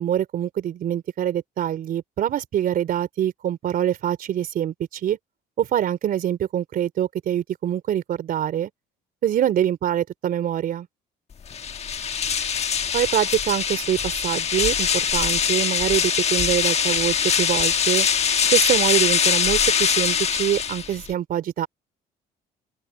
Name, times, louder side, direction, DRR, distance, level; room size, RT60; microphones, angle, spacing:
voice 1, 0.0-5.2 5.6-8.7 9.2-10.9 12.9-18.1 18.5-21.7, right 10 dB, 60° right, 3.4 m, -24 dB
sound 1, 11.5-21.1, left 7 dB, 40° left, 1.4 m, -22 dB
open air
cardioid pair, 110°, 17 cm